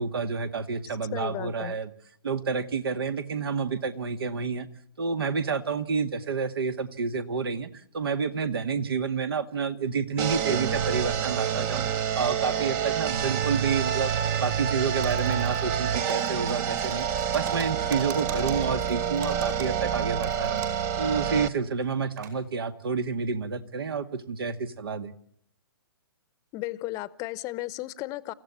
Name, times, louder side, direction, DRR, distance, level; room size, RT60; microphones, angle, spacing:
voice 1, 0.0-1.9 2.2-4.7 5.0-11.9 12.2-14.1 14.4-17.1 17.3-20.6 21.0-25.1, right 5 dB, 70° right, 2.0 m, -29 dB
voice 2, 0.9-1.8 26.5-28.3, left 18 dB, 25° left, 0.9 m, -35 dB
sound 1, 10.2-21.5, right 8 dB, 30° right, 1.0 m, -28 dB
Typing, 15.0-15.8 16.1-20.9 21.2-21.3 21.8-22.4, right 9 dB, 50° right, 5.7 m, -45 dB
28.0 x 15.0 x 8.4 m
figure-of-eight pair, 125°, 13 cm